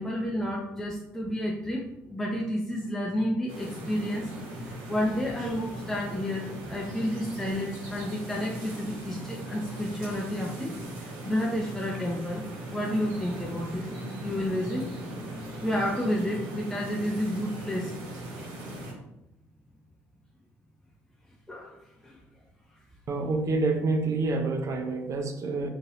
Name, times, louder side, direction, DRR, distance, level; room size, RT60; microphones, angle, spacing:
voice 1, 0.0-4.3 4.6-13.9 14.2-14.9 15.6-18.0 21.5-22.2, equal, 5° left, -2 dB, 0.6 m, -31 dB
sound 1, 3.5-18.9, right 1 dB, 65° right, 1.2 m, -39 dB
voice 2, 23.1-25.7, right 3 dB, 45° right, 5 dB, 0.6 m, -27 dB
3.9 x 2.6 x 2.6 m, 0.85 s
hypercardioid pair, 55°, 7 cm